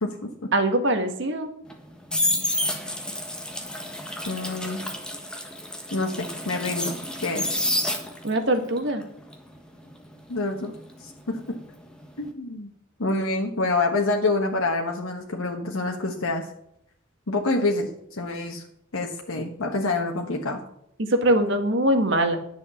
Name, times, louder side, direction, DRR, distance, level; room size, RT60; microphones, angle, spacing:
voice 1, 0.0-0.5 4.2-4.8 5.9-7.0 7.2-7.5 10.3-10.7 11.0-11.6 12.2-12.7 13.0-16.5 17.3-18.6 18.9-20.6, left 2 dB, 85° left, 1 dB, 1.3 m, -27 dB
voice 2, 0.5-1.5 8.2-9.0 21.0-22.4, right 1 dB, 60° right, 6 dB, 1.6 m, -22 dB
sound 1, 1.7-8.4 8.8-11.7 11.9-12.3, left 1 dB, 5° left, 1.4 m, -29 dB
10.5 x 6.9 x 7.0 m, 0.74 s
head